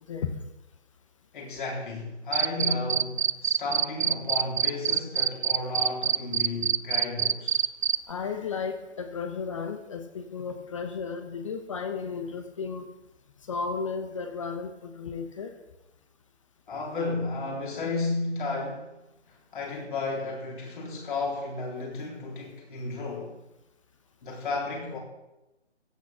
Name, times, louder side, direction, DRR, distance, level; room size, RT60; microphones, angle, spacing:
voice 1, 1.3-7.6 16.7-18.9 19.3-23.4 24.2-25.0, left 3 dB, 45° left, 3.7 m, -33 dB
Cricket, 2.3-8.0, right 8 dB, 65° right, 0.6 m, -24 dB
voice 2, 8.1-12.9 13.4-15.5, left 5 dB, 30° left, 0.9 m, -34 dB
15.5 x 8.8 x 5.9 m
hypercardioid pair, 155°, 35 cm